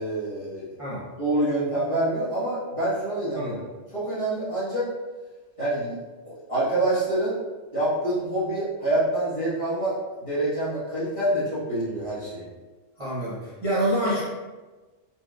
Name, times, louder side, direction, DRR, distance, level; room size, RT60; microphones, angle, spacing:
voice 1, 0.0-0.7 1.2-3.5 3.9-4.9 5.6-6.0 6.2-7.4 7.7-12.5, right 1 dB, 25° left, -12 dB, 1.4 m, -26 dB
voice 2, 13.0-14.2, right 1 dB, 30° right, -11 dB, 0.9 m, -26 dB
4.3 x 3.1 x 2.4 m, 1.3 s
omnidirectional pair, 1.4 m